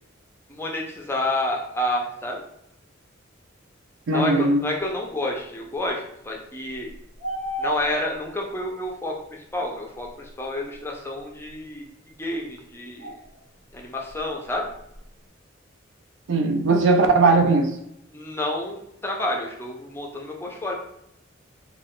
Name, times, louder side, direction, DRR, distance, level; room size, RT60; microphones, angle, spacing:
voice 1, 0.5-2.4 4.1-6.9 7.6-11.9 12.2-13.2 13.7-14.7 18.1-20.7, left 1 dB, 10° left, 0 dB, 0.4 m, -29 dB
voice 2, 4.1-4.6 16.3-17.8, right 3 dB, 65° right, 5 dB, 0.4 m, -19 dB
sound 1, 6.7-8.3 10.7-10.8 13.0-13.4 13.7-13.8 14.1-15.1, equal, 40° right, 0.8 m, -32 dB
2.3 x 2.3 x 3.5 m, 0.80 s
head